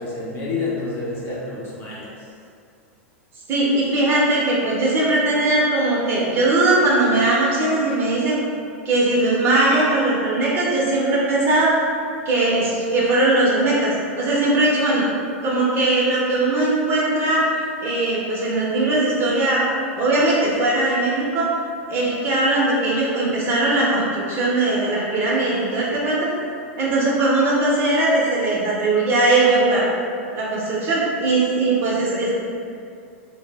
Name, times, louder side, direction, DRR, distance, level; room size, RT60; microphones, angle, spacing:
voice 1, 0.0-2.3, left 3 dB, 30° left, -6 dB, 0.8 m, -29 dB
voice 2, 3.5-8.4 8.8-11.8 12.2-13.9 14.2-15.0 15.4-17.5 17.8-19.6 20.0-21.5 21.9-26.3 26.8-29.9 30.3-32.3, right 2 dB, 35° right, -6 dB, 0.8 m, -19 dB
2.0 x 2.0 x 3.4 m, 2.3 s
hypercardioid pair, 105°, 7 cm